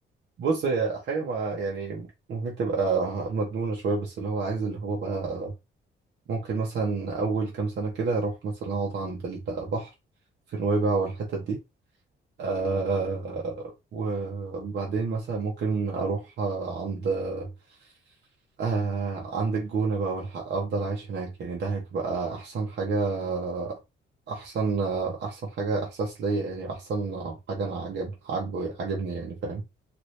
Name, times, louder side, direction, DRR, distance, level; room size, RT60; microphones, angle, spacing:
voice 1, 0.4-5.5 6.3-9.9 10.5-11.6 12.4-17.5 18.6-23.8 24.3-29.6, right 4 dB, 60° right, 0.9 m, -29 dB
2.7 x 2.6 x 3.1 m
cardioid pair, 100°, 20 cm